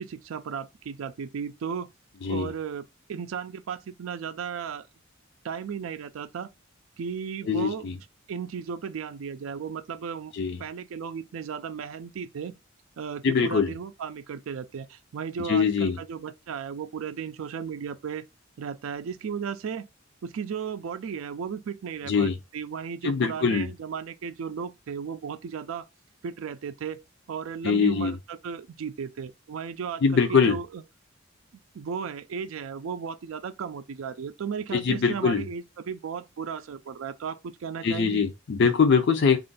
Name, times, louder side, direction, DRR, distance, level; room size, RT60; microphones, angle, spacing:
voice 1, 0.0-1.9 2.2-4.9 5.4-6.5 7.0-7.9 8.3-10.3 10.6-12.5 13.0-18.2 18.6-19.9 20.2-25.9 26.2-27.0 27.3-30.8 31.7-38.2, right 6 dB, 85° right, 0.4 m, -35 dB
voice 2, 2.2-2.5 7.5-8.0 10.3-10.6 13.2-13.7 15.4-16.0 22.1-22.4 23.0-23.7 27.6-28.2 30.0-30.6 34.7-35.5 37.8-39.4, left 5 dB, 60° left, 0.4 m, -23 dB
4.2 x 2.4 x 3.8 m
head